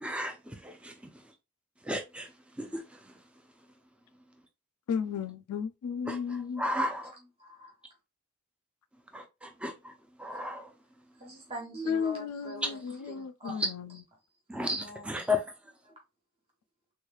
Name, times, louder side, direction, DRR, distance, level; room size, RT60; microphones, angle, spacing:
voice 1, 0.0-0.9 1.9-2.3 2.6-2.8 6.1-7.1 9.1-9.7 10.2-10.7 14.5-15.4, left 2 dB, 5° right, 0.4 m, -33 dB
voice 2, 4.9-6.6 11.9-14.0, left 6 dB, 80° left, 0.3 m, -34 dB
voice 3, 7.0-7.7 11.2-13.6 14.5-15.3 15.8-16.0, right 1 dB, 25° right, 1.1 m, -43 dB
3.6 x 3.1 x 2.3 m
head